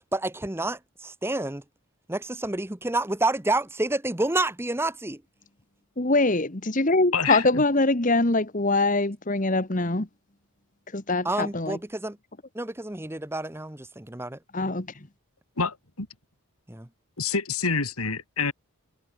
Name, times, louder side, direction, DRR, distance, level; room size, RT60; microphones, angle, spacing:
voice 1, 0.1-1.6 2.1-5.2 11.2-12.2 12.5-14.4 16.7-16.9, right 2 dB, 10° right, 0.9 m, -29 dB
voice 2, 6.0-10.1 10.9-11.8 14.5-14.9, left 2 dB, 35° left, 1.5 m, -23 dB
voice 3, 7.1-7.6 15.6-16.1 17.2-18.5, left 5 dB, 90° left, 3.4 m, -27 dB
head